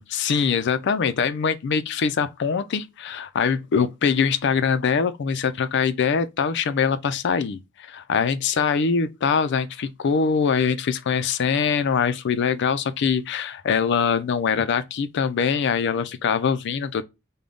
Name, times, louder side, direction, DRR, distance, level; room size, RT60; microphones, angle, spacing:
voice 1, 0.0-17.0, left 6 dB, 55° left, 0.4 m, -23 dB
3.8 x 2.2 x 3.4 m
head